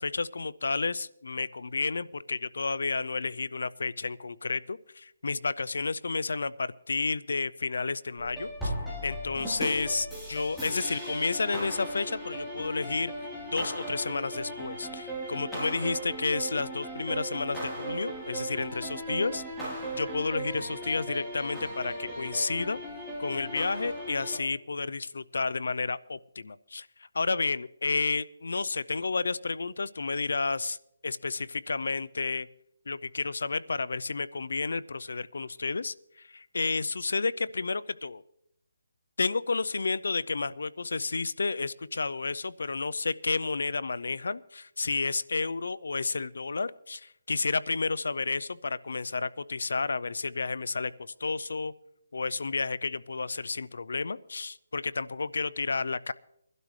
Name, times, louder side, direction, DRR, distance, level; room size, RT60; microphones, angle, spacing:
voice 1, 0.0-8.7 9.0-13.1 13.5-19.4 19.9-22.8 23.2-26.9 27.1-30.8 31.0-32.5 32.9-38.2 39.2-51.7 52.1-56.1, left 4 dB, 80° left, 19 dB, 0.5 m, -31 dB
sound 1, 8.2-24.4, right 1 dB, 5° left, 3.6 m, -37 dB
21.5 x 12.0 x 3.2 m, 0.77 s
hypercardioid pair, 165°, 0 cm